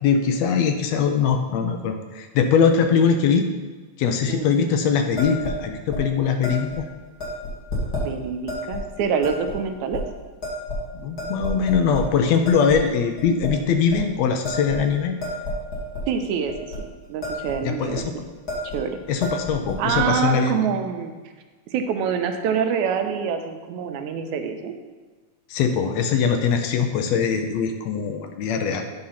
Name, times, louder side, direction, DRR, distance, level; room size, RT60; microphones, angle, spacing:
voice 1, 0.0-3.5 4.0-6.9 10.9-15.1 17.6-18.0 19.1-20.5 25.5-28.9, left 6 dB, 75° left, 6 dB, 1.7 m, -21 dB
sound 1, 5.2-5.6 5.9-6.0 6.4-6.8 7.2-8.1 8.5-8.8 9.2-9.6 9.9-10.0 10.4-10.9 11.2-12.1 12.5-12.8 13.2-13.5 13.9-14.1 14.4-16.1 16.5-16.8 17.0-17.6 17.8-18.0 18.5-18.8 19.1-20.0, left 1 dB, 35° left, 2.3 m, -30 dB
voice 2, 8.0-10.0 16.1-16.5 16.8-18.2 18.7-19.0 19.8-21.1 21.7-24.7, right 7 dB, 85° right, 6 dB, 2.1 m, -26 dB
9.9 x 3.8 x 5.7 m, 1.4 s
omnidirectional pair, 3.3 m